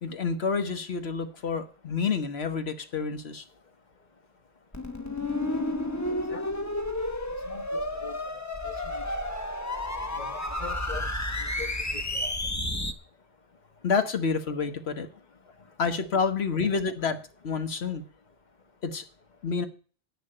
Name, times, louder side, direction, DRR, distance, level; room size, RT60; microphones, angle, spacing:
voice 1, 0.0-3.4 13.8-15.1 15.8-18.0 18.8-19.0 19.4-19.7, left 5 dB, 85° left, 1.4 m, -28 dB
sound 1, 4.7-12.9, left 1 dB, 15° left, 0.9 m, -31 dB
voice 2, 6.1-6.5 7.5-9.0 10.2-11.1 11.6-12.3, left 5 dB, 45° left, 1.4 m, -43 dB
10.5 x 6.4 x 8.8 m
omnidirectional pair, 1.0 m